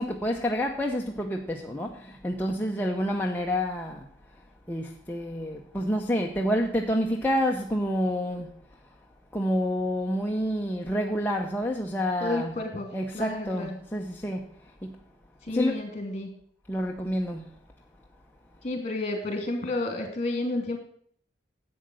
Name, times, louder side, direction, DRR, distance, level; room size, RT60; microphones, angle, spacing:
voice 1, 0.0-4.1 4.7-8.5 9.3-12.6 12.9-14.5 14.8-15.0 15.5-15.8 16.7-17.5, equal, 10° left, 0 dB, 0.8 m, -28 dB
voice 2, 12.2-12.9 13.1-13.8 15.4-16.3 18.6-20.8, left 2 dB, 40° left, 5 dB, 2.8 m, -31 dB
11.0 x 7.8 x 6.3 m, 0.63 s
head